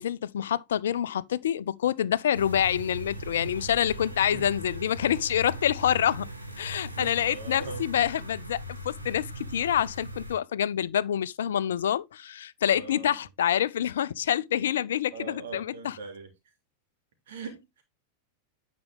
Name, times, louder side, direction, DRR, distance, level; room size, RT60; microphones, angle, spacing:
voice 1, 0.0-6.3 6.6-16.0, left 10 dB, 60° left, 0.4 m, -27 dB
sound 1, 2.3-10.3, equal, 85° right, 1.5 m, -39 dB
voice 2, 7.0-7.9 12.7-13.2 15.1-16.3 17.3-17.8, right 4 dB, 60° right, 2.7 m, -40 dB
9.5 x 5.2 x 3.5 m
figure-of-eight pair, 90°, 0 cm